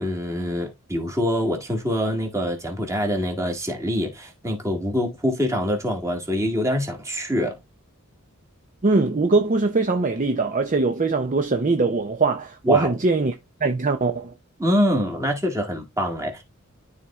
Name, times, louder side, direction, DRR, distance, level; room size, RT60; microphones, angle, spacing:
voice 1, 0.0-7.6 12.6-12.9 14.6-16.4, equal, 15° right, 1.8 m, -25 dB
voice 2, 8.8-13.3 13.6-14.3, right 3 dB, 35° right, 0.6 m, -21 dB
12.5 x 4.3 x 2.4 m
head